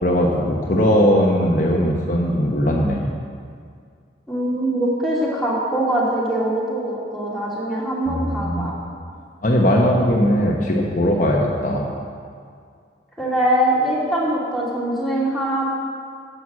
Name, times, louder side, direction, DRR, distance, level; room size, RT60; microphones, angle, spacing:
voice 1, 0.0-3.1 8.1-8.7 9.4-11.9, equal, 45° left, -1 dB, 1.0 m, -19 dB
voice 2, 4.3-8.7 13.2-15.8, right 1 dB, ahead, -7 dB, 2.8 m, -22 dB
11.0 x 7.9 x 7.4 m, 2.2 s
head